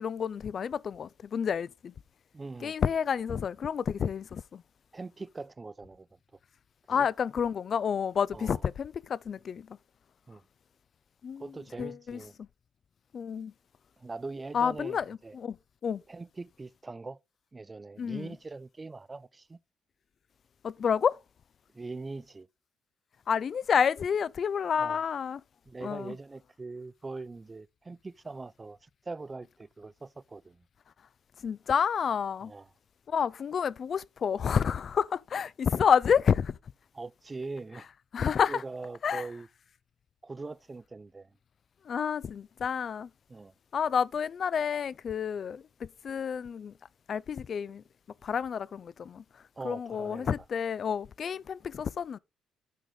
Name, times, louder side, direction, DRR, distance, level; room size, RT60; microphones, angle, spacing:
voice 1, 0.0-1.9 2.6-4.6 6.9-9.8 11.2-11.5 11.8-12.5 13.1-13.5 14.5-15.6 15.8-16.0 18.0-18.3 20.6-21.2 23.3-25.4 25.8-26.2 31.4-32.5 33.1-36.6 38.1-38.6 39.0-39.2 41.9-43.1 43.7-46.7 47.1-47.8 48.2-49.2 49.6-52.2, left 7 dB, 50° left, 0.4 m, -29 dB
voice 2, 2.3-2.8 4.9-6.1 6.9-7.1 8.3-8.6 10.3-10.4 11.4-12.4 14.0-15.4 16.1-17.2 17.5-19.6 21.7-22.5 24.8-25.0 25.7-30.6 32.4-32.7 36.9-37.9 38.2-39.5 40.2-41.3 43.3-43.5 49.6-50.3, right 3 dB, 25° right, 0.3 m, -42 dB
9.1 x 4.9 x 3.9 m
cardioid pair, 90°, 0 cm